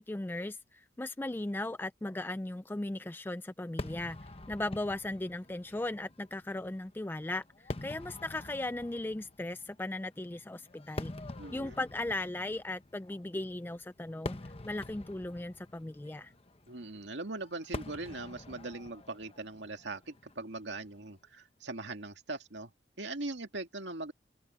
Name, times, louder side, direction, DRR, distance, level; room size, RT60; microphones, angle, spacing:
voice 1, 0.0-4.2 4.5-7.4 7.8-11.2 11.5-16.3, left 2 dB, 10° left, 0.4 m, -37 dB
Fireworks, 3.8-21.1, left 2 dB, 35° left, 1.0 m, -46 dB
voice 2, 11.4-11.8 16.7-22.7 23.0-24.1, right 2 dB, 90° right, 2.2 m, -41 dB
head